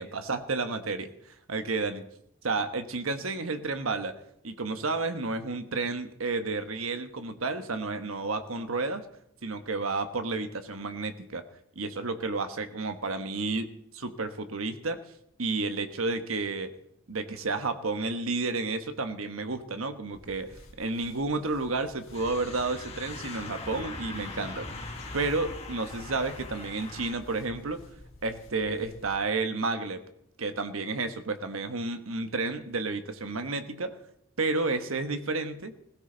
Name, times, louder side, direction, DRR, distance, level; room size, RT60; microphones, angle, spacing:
voice 1, 0.0-2.0 2.4-4.1 4.4-9.0 9.4-11.4 11.7-15.1 15.4-16.7 17.1-24.7 25.1-27.9 28.2-30.0 30.4-34.0 34.4-35.7, right 3 dB, 85° right, 9 dB, 1.3 m, -31 dB
sound 1, 20.1-29.1, equal, 75° left, 3.1 m, -52 dB
sound 2, 22.1-27.2, left 3 dB, 30° left, 2.0 m, -41 dB
17.0 x 16.0 x 3.9 m, 0.73 s
head